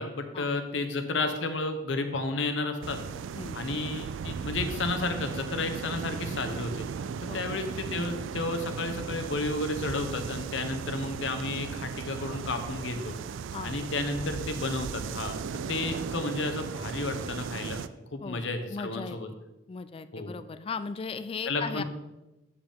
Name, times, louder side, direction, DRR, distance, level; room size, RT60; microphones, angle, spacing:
voice 1, 0.0-3.0 3.5-6.8 7.2-13.1 13.6-15.4 15.7-17.8 18.1-19.3 20.1-20.4 21.4-21.8, left 3 dB, 75° left, 7 dB, 0.9 m, -32 dB
sound 1, 2.8-17.9, right 6 dB, 80° right, 0.3 m, -36 dB
voice 2, 18.2-19.2 19.7-21.8, left 5 dB, 30° left, 12 dB, 0.3 m, -37 dB
7.7 x 6.8 x 3.5 m, 1.0 s
head